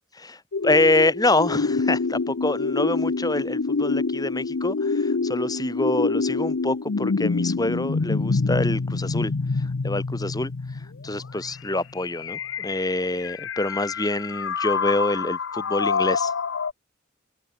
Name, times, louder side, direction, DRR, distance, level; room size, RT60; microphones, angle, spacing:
voice 1, 0.2-9.3 9.6-10.5 11.0-16.3, left 2 dB, 20° left, 3.7 m, -26 dB
sound 1, 0.5-16.7, left 4 dB, 75° left, 0.7 m, -26 dB
head